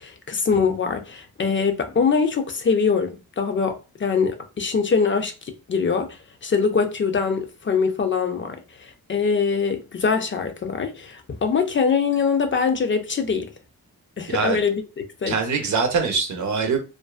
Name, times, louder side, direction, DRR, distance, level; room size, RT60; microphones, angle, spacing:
voice 1, 0.0-13.5 14.2-14.8 15.2-15.4, left 5 dB, 40° left, 0.4 m, -23 dB
voice 2, 14.3-14.6 15.3-16.8, right 5 dB, 65° right, 0.7 m, -23 dB
2.5 x 2.2 x 2.3 m
cardioid pair, 105°, 32 cm